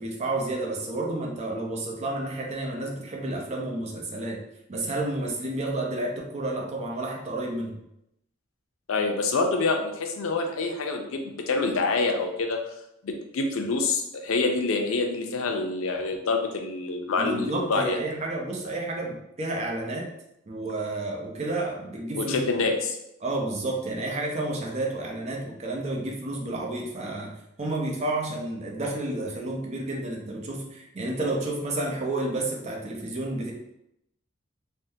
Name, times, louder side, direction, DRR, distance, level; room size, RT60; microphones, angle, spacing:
voice 1, 0.0-4.4 4.7-7.8 17.2-20.1 20.5-22.4 23.2-33.5, right 2 dB, 35° right, 0 dB, 0.5 m, -30 dB
voice 2, 8.9-12.6 13.0-18.0 22.1-23.0, left 3 dB, 90° left, 4 dB, 0.5 m, -26 dB
3.4 x 2.1 x 2.6 m, 0.82 s
head